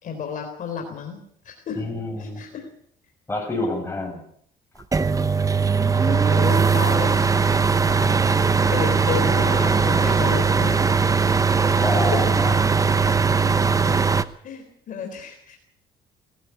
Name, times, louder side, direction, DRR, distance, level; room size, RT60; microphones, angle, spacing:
voice 1, 0.0-1.8 2.2-2.7 6.0-7.3 8.7-11.8 12.1-12.3 13.8-14.1 14.4-15.6, left 6 dB, 50° left, 4 dB, 3.9 m, -32 dB
voice 2, 1.8-2.4 3.3-4.2 8.0-8.3 11.8-12.5, left 2 dB, 15° left, 2 dB, 7.8 m, -28 dB
sound 1, 4.9-14.2, right 5 dB, 20° right, 0.9 m, -19 dB
20.5 x 14.5 x 8.5 m, 0.66 s
cardioid pair, 110°, 17 cm